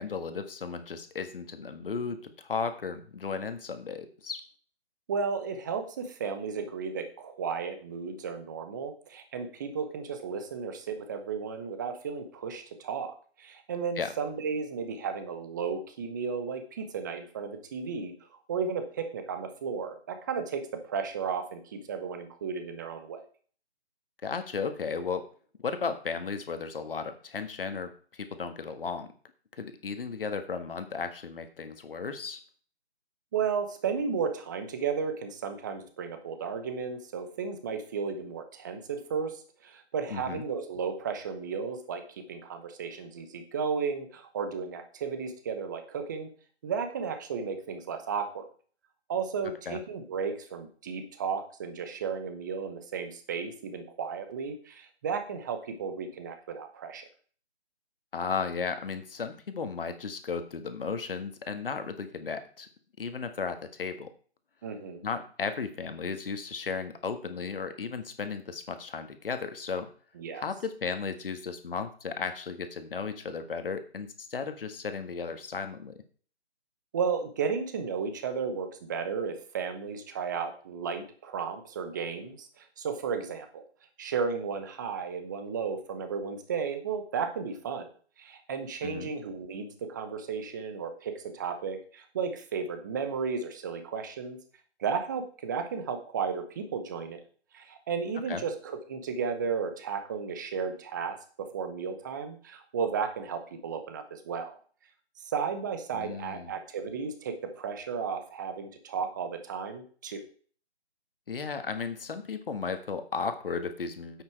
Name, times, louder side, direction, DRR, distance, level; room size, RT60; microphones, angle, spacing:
voice 1, 0.0-4.4 14.0-14.1 24.2-25.2 25.6-29.1 29.6-32.4 40.1-40.4 49.6-49.8 58.1-62.7 63.0-64.1 65.0-69.9 70.3-75.9 88.8-89.1 98.3-98.4 105.9-106.6 111.3-114.2, left 5 dB, 55° left, 9 dB, 1.6 m, -35 dB
voice 2, 5.1-18.1 18.5-23.2 33.3-46.3 46.6-48.4 49.1-57.1 64.6-65.0 70.2-70.4 76.9-83.6 84.0-87.9 88.2-94.4 94.8-97.2 97.5-104.6 105.2-110.2, right 6 dB, 15° right, 8 dB, 0.9 m, -34 dB
9.2 x 7.9 x 4.6 m, 0.43 s
figure-of-eight pair, 155°, 34 cm